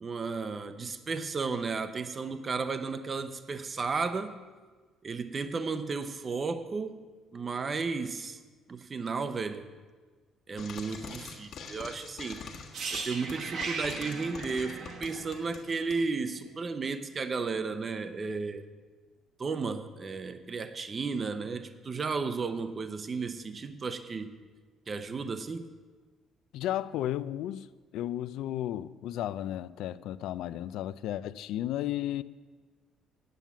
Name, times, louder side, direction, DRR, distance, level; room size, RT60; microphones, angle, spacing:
voice 1, 0.0-4.4 5.0-7.1 7.3-8.4 8.7-9.7 10.5-12.4 12.9-18.7 19.4-24.4 24.9-25.7, right 4 dB, 25° right, 0.6 m, -34 dB
Frying (food), 10.6-16.0, left 5 dB, 50° left, 1.5 m, -45 dB
sound 1, 12.7-16.6 16.9-17.1, right 4 dB, 45° right, 1.1 m, -38 dB
voice 2, 26.5-27.7 27.9-32.2, left 12 dB, 75° left, 0.4 m, -33 dB
9.2 x 7.4 x 8.2 m
cardioid pair, 150°, 0 cm